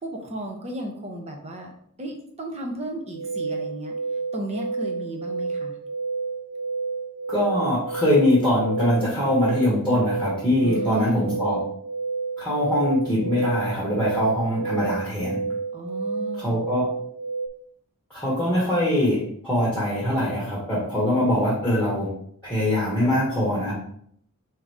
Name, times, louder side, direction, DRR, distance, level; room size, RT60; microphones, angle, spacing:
voice 1, 0.0-1.7 2.0-3.9 4.3-5.8 10.6-11.3 15.7-16.7, equal, 30° right, 2 dB, 0.8 m, -34 dB
sound 1, 3.1-17.5, right 4 dB, 75° right, 0.3 m, -30 dB
voice 2, 7.3-11.6 12.4-15.4 16.4-16.9 18.1-22.1 22.4-23.7, left 1 dB, 10° left, -7 dB, 1.3 m, -23 dB
3.6 x 2.9 x 4.8 m, 0.66 s
head